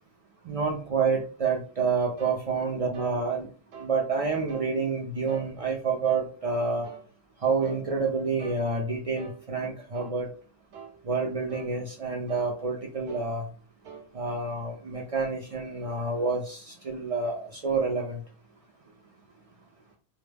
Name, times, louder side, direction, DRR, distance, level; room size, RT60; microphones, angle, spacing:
voice 1, 0.5-3.5 3.8-6.9 7.4-10.3 11.0-13.5 14.1-18.2, right 4 dB, 60° right, 0 dB, 0.3 m, -28 dB
sound 1, 2.2-2.4 2.9-3.2 3.7-4.0 4.5-4.7 5.3-5.5 6.1-6.3 6.8-7.1 7.6-7.8 8.4-8.6 9.2-9.4 9.9-10.2 10.7-11.0 11.5-11.7 12.3-12.5 13.1-13.3 13.8-14.1, right 6 dB, 80° right, 0.9 m, -44 dB
2.1 x 2.0 x 3.2 m, 0.39 s
omnidirectional pair, 1.1 m